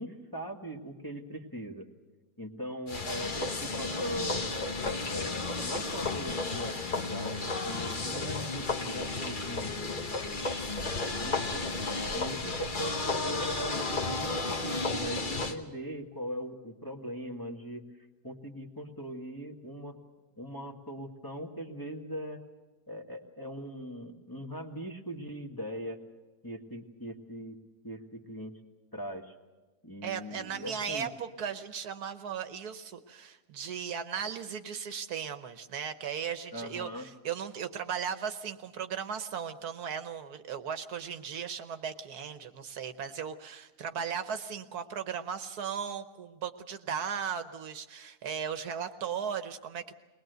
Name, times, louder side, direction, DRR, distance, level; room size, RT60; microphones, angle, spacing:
voice 1, 0.0-1.8 2.4-11.6 12.1-17.8 18.2-20.0 20.4-22.4 22.9-26.0 26.4-27.6 27.8-28.6 28.9-29.3 29.8-31.1 36.5-37.1, equal, 15° left, 1 dB, 1.6 m, -40 dB
sound 1, 2.9-15.5, left 3 dB, 35° left, 1.2 m, -33 dB
voice 2, 30.0-49.9, right 7 dB, 70° right, 10 dB, 1.4 m, -37 dB
21.5 x 20.0 x 8.0 m, 1.2 s
omnidirectional pair, 1.8 m